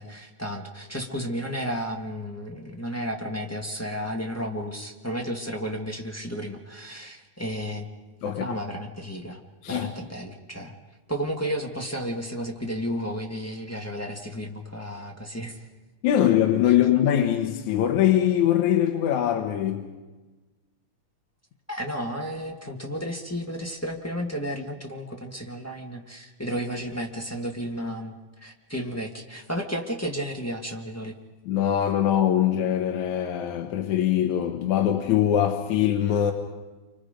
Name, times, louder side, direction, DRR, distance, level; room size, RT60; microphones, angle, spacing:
voice 1, 0.0-7.9 8.2-9.4 9.7-10.7 11.1-15.6 21.7-31.1, equal, 10° left, 0.7 m, -33 dB
voice 2, 16.0-19.9 31.5-36.3, left 11 dB, 70° left, 2.4 m, -22 dB
29.5 x 25.5 x 5.2 m
omnidirectional pair, 3.6 m